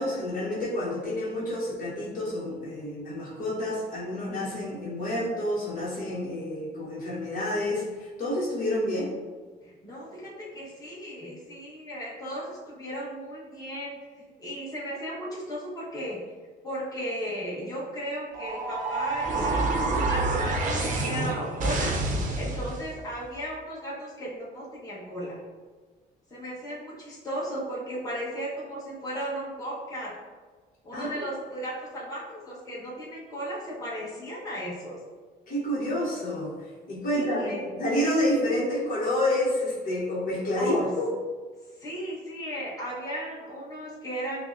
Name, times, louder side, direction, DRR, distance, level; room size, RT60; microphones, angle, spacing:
voice 1, 0.0-9.1 30.9-31.3 35.5-41.1, left 1 dB, 55° left, -5 dB, 1.0 m, -29 dB
voice 2, 9.6-14.0 14.4-16.2 16.6-25.4 26.3-30.1 30.8-35.0 37.1-37.6 40.5-40.9 41.8-44.5, equal, 20° left, -7 dB, 1.1 m, -35 dB
sound 1, 18.3-22.9, right 2 dB, 50° right, 0.6 m, -27 dB
5.5 x 2.0 x 2.5 m, 1.4 s
cardioid pair, 110°, 17 cm